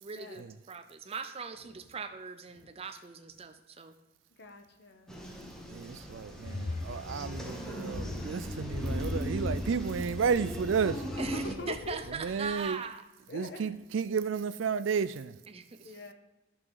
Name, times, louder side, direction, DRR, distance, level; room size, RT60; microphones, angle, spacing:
voice 1, 0.0-3.9 11.2-13.0 15.5-15.9, right 5 dB, 30° right, 0.5 m, -40 dB
voice 2, 4.4-5.2 11.1-12.0 13.3-13.8 15.8-16.1, left 2 dB, 60° left, 1.1 m, -44 dB
sound 1, 5.1-11.6, equal, 5° left, 1.3 m, -40 dB
voice 3, 5.7-11.0 12.2-12.8 13.3-15.4, right 6 dB, 90° right, 0.4 m, -32 dB
sound 2, 6.3-12.6, left 2 dB, 40° left, 0.6 m, -39 dB
11.0 x 5.9 x 4.8 m
head